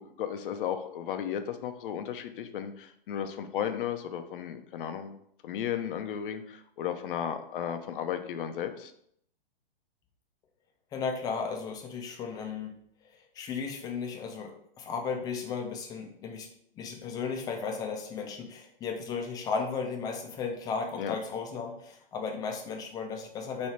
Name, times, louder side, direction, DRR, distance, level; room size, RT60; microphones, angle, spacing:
voice 1, 0.0-5.2 5.4-8.9 21.0-21.2, left 9 dB, 65° left, 8 dB, 0.5 m, -34 dB
voice 2, 10.9-12.7 13.1-16.5 16.8-23.7, left 5 dB, 15° left, 3 dB, 0.4 m, -35 dB
3.1 x 2.3 x 4.2 m, 0.71 s
hypercardioid pair, 125°, 29 cm